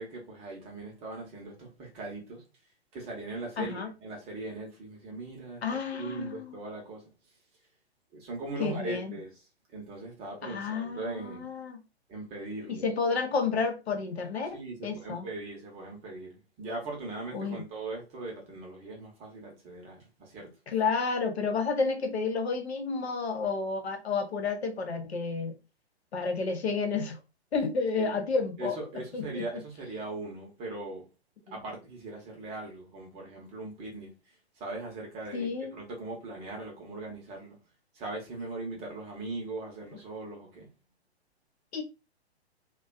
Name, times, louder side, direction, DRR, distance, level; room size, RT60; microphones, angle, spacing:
voice 1, 0.0-2.4 2.9-7.1 8.1-9.4 9.7-11.5 12.1-12.8 14.5-20.5 27.9-28.2 28.6-31.1 31.5-34.1 34.6-37.6 37.9-40.7, right 2 dB, 20° right, 0.7 m, -40 dB
voice 2, 3.6-3.9 5.6-6.6 8.6-9.1 10.4-11.8 12.7-15.3 17.3-17.6 20.7-25.5 26.1-27.2 27.5-28.8 29.1-29.4 35.3-35.7 41.7-41.8, left 4 dB, 70° left, 0.7 m, -30 dB
2.4 x 2.2 x 2.3 m
figure-of-eight pair, 120°, 33 cm